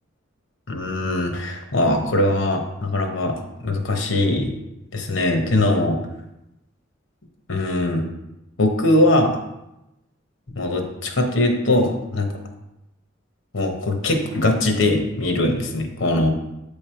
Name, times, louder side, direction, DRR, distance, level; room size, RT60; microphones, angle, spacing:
voice 1, 0.7-3.4 3.6-4.5 4.9-6.0 7.5-8.1 8.6-9.4 10.5-12.3 13.5-16.3, left 1 dB, 65° left, 3 dB, 1.0 m, -21 dB
8.3 x 3.3 x 4.4 m, 0.91 s
head